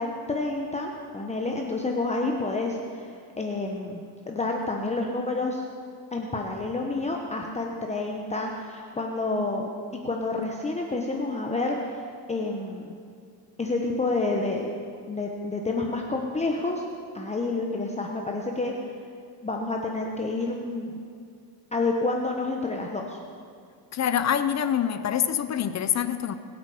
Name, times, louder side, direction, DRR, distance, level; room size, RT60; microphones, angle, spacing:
voice 1, 0.0-4.0 4.3-5.6 6.1-12.9 13.6-14.7 15.1-16.8 17.1-18.7 19.4-20.9 21.7-23.2, left 3 dB, 15° left, 1 dB, 1.0 m, -29 dB
voice 2, 23.9-26.4, left 9 dB, 40° left, 11 dB, 0.6 m, -25 dB
22.0 x 8.2 x 4.9 m, 2.3 s
cardioid pair, 135°, 44 cm